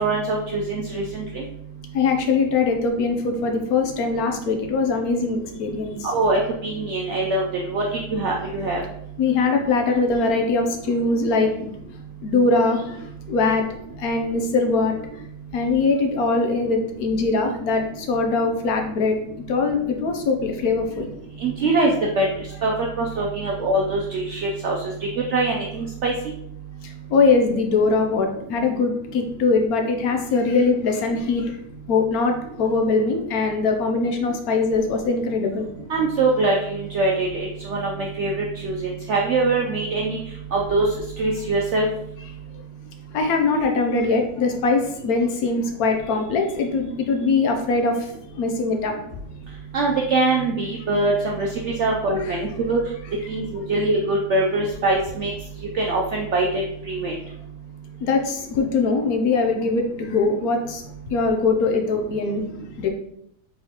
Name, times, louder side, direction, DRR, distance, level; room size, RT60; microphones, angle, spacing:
voice 1, 0.0-1.4 6.1-7.8 8.1-8.8 21.4-22.3 22.6-22.7 23.0-24.8 25.3-26.1 35.9-40.2 40.5-40.9 41.2-41.8 49.7-52.8 53.3-55.3 55.7-56.5 56.9-57.1, right 2 dB, 70° right, -1 dB, 0.6 m, -23 dB
voice 2, 1.9-6.1 9.2-11.5 12.2-13.0 13.3-13.6 14.0-15.0 15.5-19.2 19.5-21.1 27.1-31.5 31.9-35.7 43.1-48.0 48.4-48.9 52.3-52.4 58.0-60.8 61.1-62.4 62.8-62.9, left 4 dB, 70° left, 3 dB, 1.0 m, -21 dB
4.0 x 3.9 x 2.9 m, 0.74 s
omnidirectional pair, 1.8 m